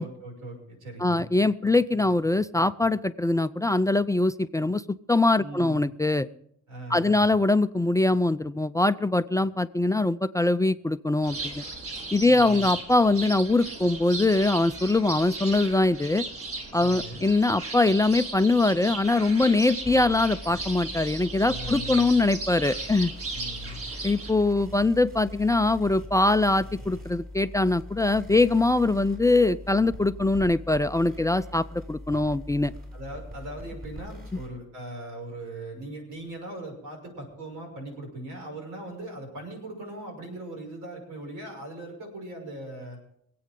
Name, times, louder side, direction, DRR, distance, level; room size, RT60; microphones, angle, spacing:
voice 1, 0.0-1.2 5.4-5.8 6.2-6.3 6.7-7.3 12.2-12.7 16.8-17.2 21.4-22.1 23.3-23.8 32.9-43.0, right 1 dB, 85° right, 1 dB, 6.5 m, -39 dB
voice 2, 1.0-4.8 5.1-6.3 6.9-11.6 12.1-16.2 16.7-23.1 24.0-32.7, left 2 dB, 10° left, 11 dB, 0.4 m, -23 dB
sound 1, 11.2-24.3, right 3 dB, 50° right, 3.6 m, -36 dB
sound 2, 19.8-34.5, left 1 dB, 30° right, 6.3 m, -42 dB
25.5 x 8.6 x 3.8 m, 0.71 s
cardioid pair, 90°, 30 cm